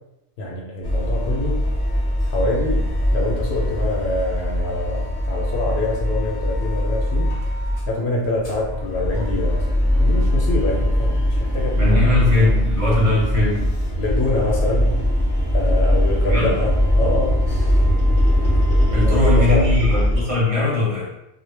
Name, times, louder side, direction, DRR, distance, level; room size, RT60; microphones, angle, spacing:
voice 1, 0.4-1.7 2.3-7.4 7.9-9.7 10.0-12.2 14.0-15.0 15.5-17.4 19.0-19.9, left 2 dB, 75° left, -1 dB, 0.8 m, -25 dB
sound 1, 0.8-7.9 8.2-20.2, equal, 30° left, 0.5 m, -20 dB
voice 2, 11.8-13.6 16.3-16.5 18.5-18.6 18.9-21.1, left 2 dB, 35° right, -5 dB, 0.8 m, -20 dB
2.1 x 2.1 x 3.1 m, 0.89 s
omnidirectional pair, 1.1 m